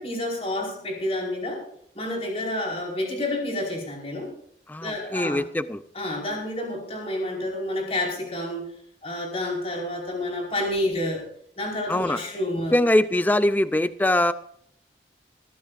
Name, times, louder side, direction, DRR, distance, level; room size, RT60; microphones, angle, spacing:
voice 1, 0.0-1.6 1.9-4.3 4.8-5.4 5.9-8.8 9.0-11.2 11.6-12.8, left 1 dB, 35° left, -1 dB, 5.0 m, -29 dB
voice 2, 4.7-5.8 11.9-12.2 12.7-14.3, left 1 dB, 10° left, 13 dB, 0.4 m, -22 dB
22.0 x 14.5 x 2.6 m, 0.66 s
head